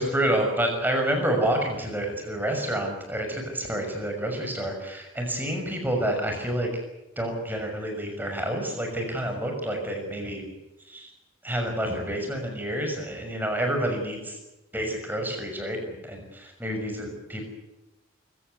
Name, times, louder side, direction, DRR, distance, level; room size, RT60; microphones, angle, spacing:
voice 1, 0.0-6.8 7.2-10.5 10.9-11.1 11.4-14.4 14.7-17.4, right 1 dB, 10° right, 3 dB, 6.2 m, -28 dB
24.5 x 16.0 x 9.7 m, 0.96 s
head